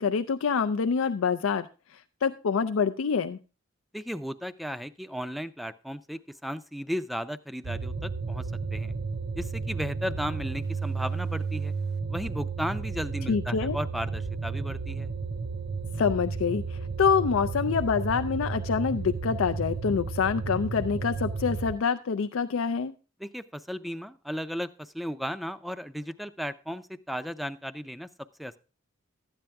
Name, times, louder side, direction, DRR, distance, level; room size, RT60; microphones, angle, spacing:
voice 1, 0.0-1.7 1.9-3.4 13.3-13.8 16.0-22.9, left 6 dB, 85° left, 9 dB, 0.4 m, -26 dB
voice 2, 3.9-8.5 8.7-8.9 9.3-11.7 12.1-15.1 23.2-28.1 28.4-28.6, equal, ahead, 11 dB, 0.4 m, -35 dB
sound 1, 7.6-21.8, right 4 dB, 50° right, 0.7 m, -33 dB
12.5 x 8.9 x 3.4 m, 0.34 s
head